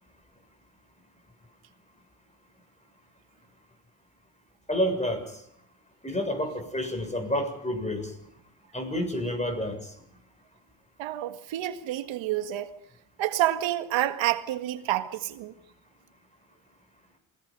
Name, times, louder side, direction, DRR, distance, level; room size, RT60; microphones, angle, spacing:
voice 1, 4.7-5.3 6.0-8.1 8.7-9.9, equal, 15° left, 7.1 m, -29 dB
voice 2, 11.0-12.7 13.2-15.5, right 14 dB, 80° right, 1.9 m, -28 dB
28.0 x 19.5 x 5.5 m
supercardioid pair, 60°, 46 cm